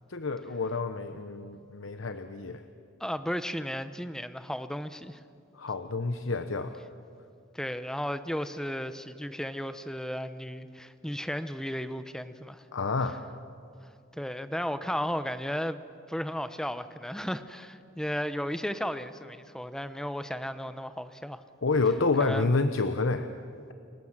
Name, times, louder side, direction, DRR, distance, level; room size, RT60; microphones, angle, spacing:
voice 1, 0.1-2.6 5.5-6.8 12.7-13.2 21.6-23.3, left 3 dB, 80° left, 9 dB, 0.9 m, -28 dB
voice 2, 3.0-5.2 7.5-12.6 14.1-15.8 16.1-21.4 22.2-22.5, equal, 5° left, 11 dB, 0.8 m, -34 dB
29.5 x 17.5 x 7.4 m, 2.6 s
head